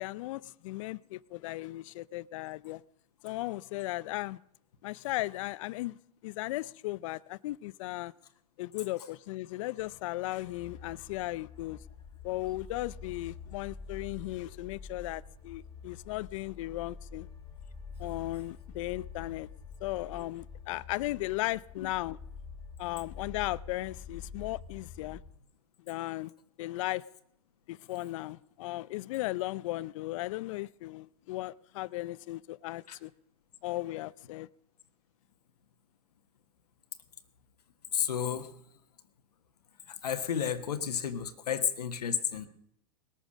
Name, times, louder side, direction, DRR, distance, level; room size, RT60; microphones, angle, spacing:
voice 1, 0.0-2.8 3.2-4.4 4.8-8.1 8.6-11.8 12.2-17.3 18.0-19.5 19.8-22.2 22.8-25.2 25.8-26.3 26.6-27.0 27.7-33.1 33.6-34.5, left 18 dB, 55° left, 0.5 m, -36 dB
sound 1, 9.8-25.4, left 5 dB, 20° left, 2.3 m, -47 dB
voice 2, 37.9-38.5 40.0-42.5, left 8 dB, 85° left, 1.3 m, -31 dB
20.0 x 8.9 x 6.3 m
hypercardioid pair, 120°, 19 cm